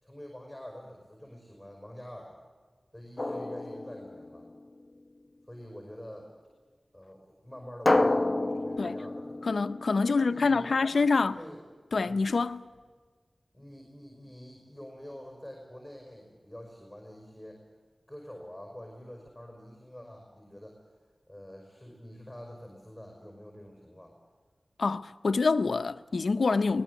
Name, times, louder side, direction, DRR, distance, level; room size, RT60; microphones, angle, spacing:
voice 1, 0.0-2.4 2.9-4.5 5.5-6.3 6.9-9.4 10.0-11.6 12.0-12.3 13.5-17.6 18.1-20.8 21.3-24.2, equal, ahead, 5.3 m, -46 dB
Drum, 3.2-4.7 7.9-10.6, left 2 dB, 25° left, 0.8 m, -29 dB
voice 2, 9.4-11.4 11.9-12.7 24.8-26.8, left 4 dB, 75° left, 0.6 m, -26 dB
22.5 x 19.0 x 8.2 m
wide cardioid pair, 80°, 0 cm